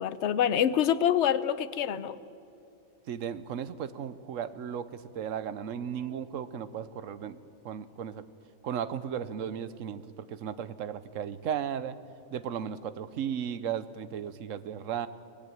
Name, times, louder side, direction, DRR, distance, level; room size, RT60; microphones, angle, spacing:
voice 1, 0.0-2.2, left 9 dB, 60° left, 14 dB, 1.0 m, -26 dB
voice 2, 3.1-7.4 7.6-8.2 8.6-12.0 12.3-15.1, right 8 dB, 70° right, 14 dB, 1.2 m, -35 dB
24.0 x 17.5 x 9.2 m, 2.7 s
omnidirectional pair, 1.4 m